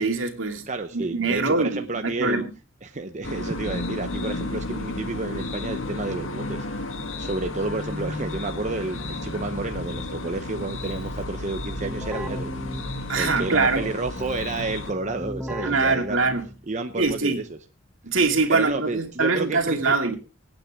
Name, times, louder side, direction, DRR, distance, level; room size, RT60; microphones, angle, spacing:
voice 1, 0.0-0.7 0.9-2.5 13.1-13.9 15.6-16.5 17.0-17.4 18.0-20.2, right 3 dB, 75° right, 2.5 m, -23 dB
voice 2, 0.7-2.4 2.8-6.7 7.2-12.5 13.2-16.3 16.7-17.6 18.5-19.9, right 3 dB, 40° right, 0.8 m, -30 dB
sound 1, 3.2-14.9, left 2 dB, 85° left, 1.9 m, -33 dB
Keyboard (musical), 8.4-16.7, equal, 5° right, 1.3 m, -38 dB
25.5 x 8.9 x 3.5 m
head